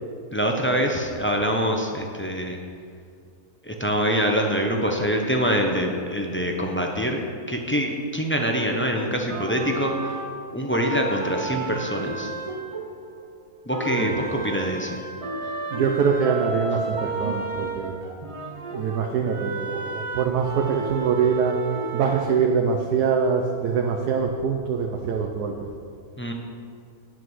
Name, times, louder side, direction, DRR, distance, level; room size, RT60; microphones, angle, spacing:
voice 1, 0.3-2.6 3.7-7.2 7.5-10.1 10.5-12.3 13.7-15.0 26.2-26.3, equal, 10° left, 1 dB, 0.7 m, -25 dB
sound 1, 9.3-13.4 13.7-22.3, right 4 dB, 35° right, 0.5 m, -32 dB
voice 2, 15.7-18.0 18.7-21.5 21.9-25.7, right 6 dB, 85° right, 2 dB, 1.3 m, -24 dB
9.4 x 8.4 x 6.3 m, 2.2 s
omnidirectional pair, 1.6 m